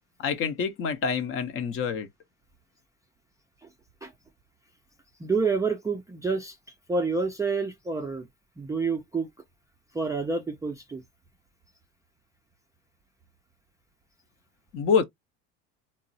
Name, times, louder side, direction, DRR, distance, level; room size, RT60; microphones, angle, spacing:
voice 1, 0.2-2.1 14.7-15.0, left 6 dB, 45° left, 0.7 m, -26 dB
voice 2, 5.2-6.6 6.9-8.3 8.6-9.3 9.9-11.0, right 4 dB, 10° right, 0.3 m, -28 dB
3.6 x 2.0 x 2.6 m
supercardioid pair, 110°, 31 cm